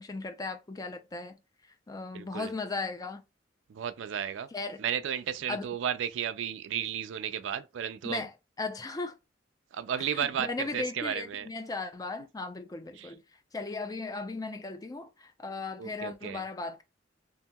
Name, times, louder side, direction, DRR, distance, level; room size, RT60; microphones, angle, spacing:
voice 1, 0.0-1.3 1.9-3.2 4.5-4.8 5.5-5.7 8.0-9.2 10.0-13.2 13.5-16.8, left 3 dB, 20° left, 0.3 m, -37 dB
voice 2, 2.1-2.5 3.7-4.5 4.8-8.3 9.7-11.5 13.0-13.1 15.8-16.4, right 8 dB, 75° right, 0.3 m, -33 dB
2.8 x 2.7 x 2.2 m
head